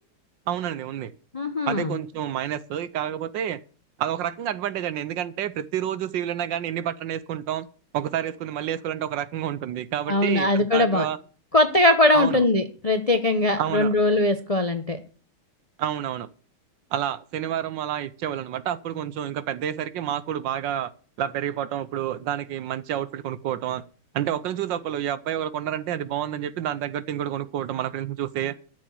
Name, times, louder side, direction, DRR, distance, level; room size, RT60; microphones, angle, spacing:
voice 1, 0.5-1.1 1.7-3.6 4.0-7.7 7.9-11.2 12.1-12.5 13.6-13.9 15.8-16.3 16.9-20.9 21.2-23.8 24.1-28.6, right 10 dB, 70° right, 1.3 m, -29 dB
voice 2, 1.3-1.9 10.1-11.1 11.5-15.0, left 2 dB, 40° left, 0.5 m, -21 dB
13.0 x 6.7 x 7.1 m
omnidirectional pair, 2.2 m